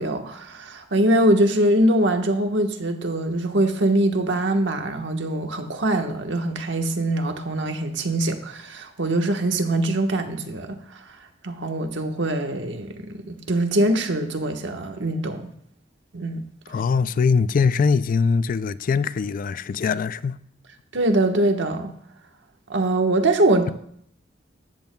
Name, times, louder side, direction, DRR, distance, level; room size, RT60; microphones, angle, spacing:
voice 1, 0.0-11.0 11.4-15.5 16.1-16.4 20.9-21.9 22.7-23.7, right 1 dB, 70° right, 1.3 m, -23 dB
voice 2, 16.7-20.4, left 5 dB, 50° left, 0.4 m, -22 dB
14.0 x 13.5 x 2.3 m
head